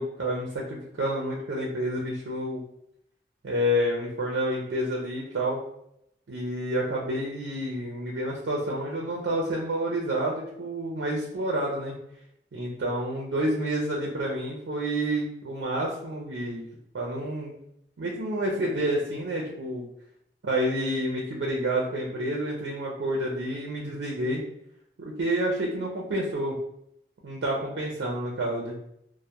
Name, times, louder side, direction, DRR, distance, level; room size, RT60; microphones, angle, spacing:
voice 1, 0.0-2.6 3.4-5.6 6.3-11.9 12.5-16.6 16.9-17.5 18.0-19.9 20.4-24.4 25.0-26.5 27.2-28.7, right 1 dB, 80° right, -2 dB, 0.4 m, -29 dB
2.2 x 2.0 x 2.8 m, 0.75 s
head